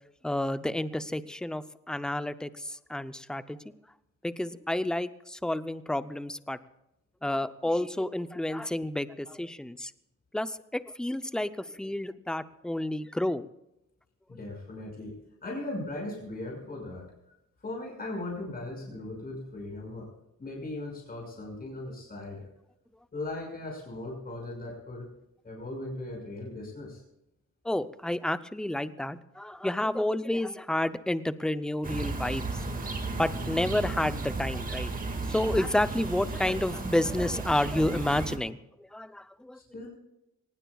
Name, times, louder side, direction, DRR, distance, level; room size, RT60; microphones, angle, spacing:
voice 1, 0.2-3.7 4.2-6.6 7.2-9.9 10.3-13.4 27.6-32.5 33.2-34.9 35.3-38.6 38.9-39.6, left 1 dB, 5° left, 12 dB, 0.5 m, -30 dB
voice 2, 14.3-15.1 15.4-17.0 17.6-20.1 20.4-22.4 23.1-25.1 25.4-27.0 39.5-39.9, left 2 dB, 30° left, -1 dB, 5.7 m, -38 dB
sound 1, 31.8-38.4, right 3 dB, 30° right, 2.0 m, -34 dB
23.5 x 19.5 x 2.3 m, 0.88 s
wide cardioid pair, 155°, 29 cm